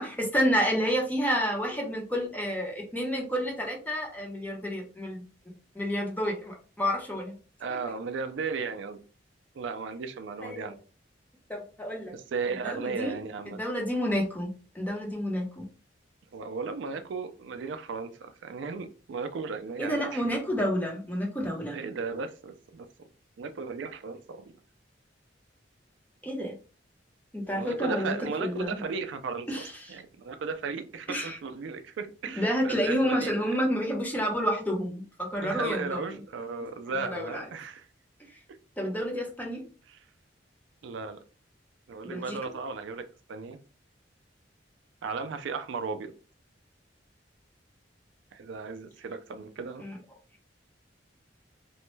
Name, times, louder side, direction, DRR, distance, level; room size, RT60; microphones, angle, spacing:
voice 1, 0.0-5.2 5.7-7.3 10.4-10.7 11.5-12.1 12.6-13.2 13.5-15.6 19.8-21.8 26.2-26.5 27.3-28.8 29.5-30.0 31.1-31.4 32.4-36.0 37.0-37.4 38.8-39.6 42.0-42.4 49.8-50.0, equal, 10° left, 0.8 m, -29 dB
voice 2, 7.6-9.0 9.5-10.8 12.1-13.6 16.3-20.3 21.7-23.1 23.4-24.5 27.5-33.6 35.4-37.9 38.5-38.6 39.9-40.1 40.8-41.2 41.9-43.6 45.0-46.1 48.3-49.9, right 4 dB, 75° right, 0.4 m, -36 dB
3.0 x 2.2 x 3.1 m
head